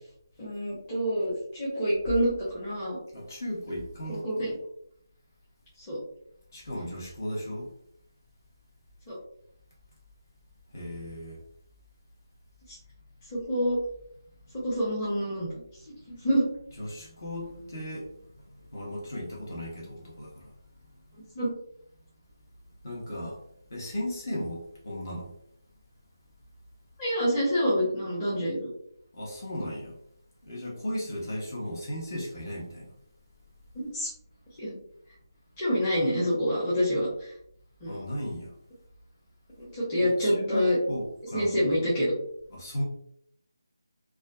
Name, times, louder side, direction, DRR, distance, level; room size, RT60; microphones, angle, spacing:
voice 1, 0.4-3.0 4.1-4.5 5.8-6.0 9.1-9.2 12.7-12.8 13.3-13.8 14.6-15.5 16.1-16.5 21.3-21.5 27.0-28.7 33.7-34.1 34.6-34.7 35.6-37.3 37.8-38.0 39.6-40.8 41.3-42.1, equal, 15° left, -10 dB, 0.7 m, -27 dB
voice 2, 3.1-4.5 6.5-7.7 10.7-11.4 16.8-18.1 18.7-20.5 22.8-23.4 23.7-25.3 29.1-30.0 30.4-32.9 37.9-38.5 40.0-41.8 42.5-42.8, equal, 50° left, -3 dB, 0.9 m, -36 dB
2.4 x 2.3 x 2.2 m, 0.70 s
figure-of-eight pair, 165°, 2 cm